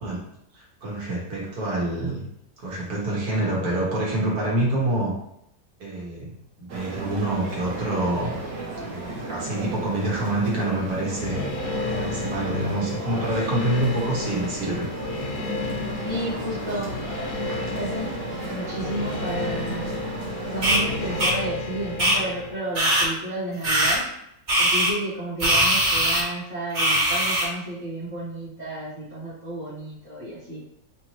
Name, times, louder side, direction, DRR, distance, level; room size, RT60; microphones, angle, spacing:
voice 1, 0.5-2.2 2.6-5.1 5.8-6.3 6.6-8.3 8.8-14.9, right 1 dB, 60° right, -4 dB, 1.7 m, -27 dB
sound 1, 6.7-21.2, right 3 dB, 85° right, 1.6 m, -35 dB
sound 2, 11.2-22.5, left 3 dB, 75° left, 0.7 m, -32 dB
voice 2, 16.0-16.9 17.6-18.1 18.5-19.9 20.4-24.0 24.6-30.6, right 1 dB, 30° right, -13 dB, 1.3 m, -32 dB
sound 3, 20.6-20.8 21.2-21.3 22.0-22.2 22.7-23.1 23.6-24.0 24.5-24.9 25.4-26.2 26.7-27.4, right 1 dB, 45° right, 1.8 m, -20 dB
4.6 x 2.7 x 3.0 m, 0.75 s
omnidirectional pair, 1.8 m